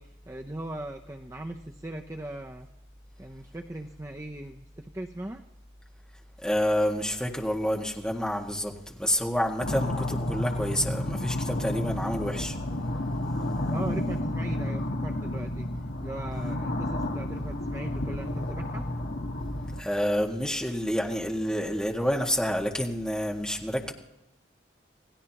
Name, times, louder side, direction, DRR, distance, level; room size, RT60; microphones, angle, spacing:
voice 1, 0.0-2.7 3.2-5.4 13.7-15.7 16.0-18.9, right 1 dB, 15° right, 0.6 m, -39 dB
voice 2, 6.4-12.6 19.8-23.9, equal, 5° left, 1.8 m, -28 dB
sound 1, 9.6-19.8, left 1 dB, 75° left, 1.4 m, -31 dB
28.0 x 17.5 x 3.0 m
head